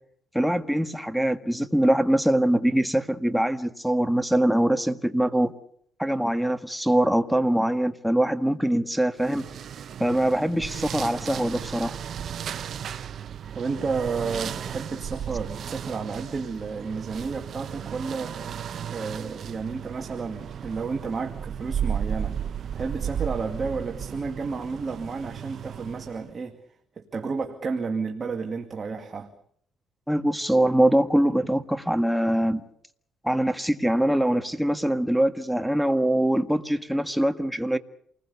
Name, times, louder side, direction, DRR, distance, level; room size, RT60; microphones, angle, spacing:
voice 1, 0.3-5.5 6.0-9.5 10.0-11.9 30.1-32.6 33.2-37.8, right 1 dB, ahead, 1.6 m, -23 dB
sound 1, 9.2-26.3, right 8 dB, 55° right, 0.9 m, -34 dB
voice 2, 13.5-18.4 18.9-22.4 22.7-26.6 27.0-29.3, right 4 dB, 35° right, 2.4 m, -31 dB
28.0 x 20.5 x 7.0 m
cardioid pair, 95°, 0 cm